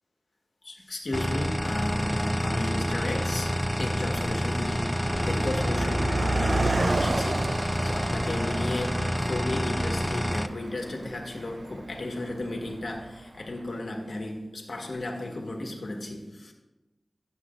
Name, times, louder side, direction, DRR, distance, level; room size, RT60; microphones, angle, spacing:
voice 1, 0.6-16.5, left 2 dB, 65° left, 2 dB, 1.3 m, -34 dB
sound 1, 1.1-10.5, equal, 5° left, 0.3 m, -28 dB
Car passing by, 1.6-1.7 2.5-2.8 3.0-13.4, right 2 dB, 55° right, 0.4 m, -33 dB
sound 2, 4.6-11.2, left 1 dB, 90° left, 1.2 m, -41 dB
11.5 x 8.0 x 2.5 m, 1.0 s
wide cardioid pair, 65°, 0 cm